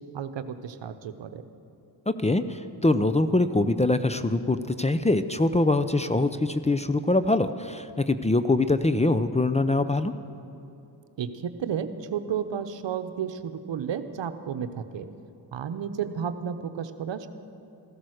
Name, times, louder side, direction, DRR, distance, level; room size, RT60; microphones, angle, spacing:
voice 1, 0.1-1.4 11.2-15.1 15.5-17.3, right 8 dB, 70° right, 10 dB, 1.0 m, -32 dB
voice 2, 2.1-10.1, left 2 dB, 15° left, 11 dB, 0.6 m, -23 dB
15.0 x 13.0 x 6.5 m, 2.8 s
cardioid pair, 60°, 46 cm